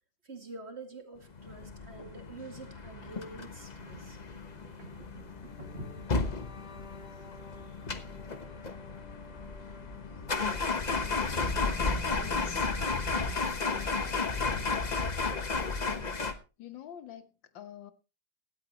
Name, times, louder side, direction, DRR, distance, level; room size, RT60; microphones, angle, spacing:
voice 1, 0.2-4.4 4.8-6.3 7.2-8.1, right 2 dB, 35° right, 2.4 m, -47 dB
sound 1, 1.4-16.3, left 4 dB, 30° left, 0.9 m, -33 dB
sound 2, 2.4-15.2, left 4 dB, 60° left, 1.9 m, -51 dB
voice 2, 12.2-12.7 13.6-14.4 16.6-17.9, left 10 dB, 85° left, 1.8 m, -47 dB
17.0 x 13.0 x 2.9 m
omnidirectional pair, 2.0 m